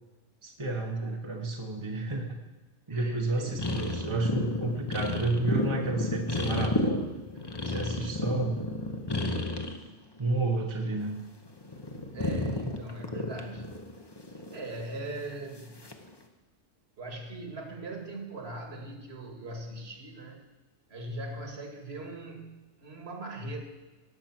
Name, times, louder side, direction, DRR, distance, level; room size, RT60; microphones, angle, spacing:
voice 1, 0.4-2.4 2.9-7.1 7.6-8.5 10.2-11.2, right 2 dB, 25° right, 1 dB, 1.2 m, -31 dB
voice 2, 2.9-3.6 12.1-13.7 14.5-15.8 17.0-20.4 20.9-23.6, right 2 dB, 55° right, 3 dB, 2.2 m, -40 dB
sound 1, 3.5-9.8 10.2-11.2 11.5-15.0 15.8-16.1, left 2 dB, 20° left, 1.0 m, -32 dB
18.0 x 6.9 x 6.0 m, 1.1 s
omnidirectional pair, 1.3 m